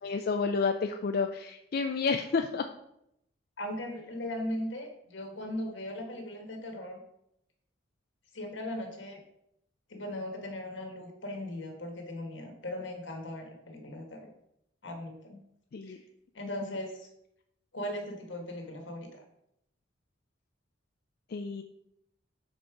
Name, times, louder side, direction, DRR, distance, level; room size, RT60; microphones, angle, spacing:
voice 1, 0.0-2.6 15.7-16.0 21.3-21.6, left 4 dB, 50° left, 5 dB, 0.4 m, -30 dB
voice 2, 3.6-7.0 8.3-9.2 9.9-14.3 14.8-15.4 15.9-16.0 16.3-17.1 17.7-19.2, left 1 dB, 80° left, 3 dB, 1.5 m, -38 dB
5.3 x 4.3 x 5.8 m, 0.78 s
head